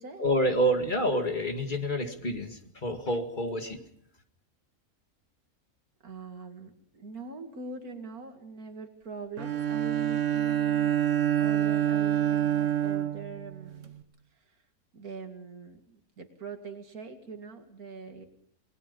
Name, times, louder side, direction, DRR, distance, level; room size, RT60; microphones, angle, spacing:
voice 1, 0.2-3.8, equal, 35° left, 6 dB, 2.1 m, -28 dB
voice 2, 6.0-10.9 11.4-13.9 14.9-18.2, right 4 dB, 85° right, 6 dB, 2.8 m, -42 dB
Bowed string instrument, 9.4-14.0, right 10 dB, 60° right, 1.6 m, -27 dB
28.0 x 20.0 x 5.5 m, 0.66 s
omnidirectional pair, 1.5 m